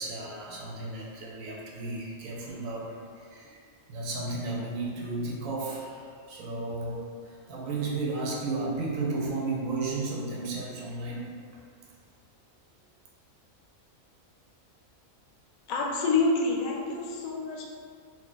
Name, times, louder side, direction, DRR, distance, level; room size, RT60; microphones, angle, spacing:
voice 1, 0.0-2.9 3.1-11.3, right 3 dB, 80° right, -3 dB, 1.0 m, -33 dB
voice 2, 15.7-17.6, left 3 dB, 80° left, -1 dB, 1.0 m, -27 dB
2.7 x 2.4 x 3.8 m, 2.2 s
omnidirectional pair, 1.4 m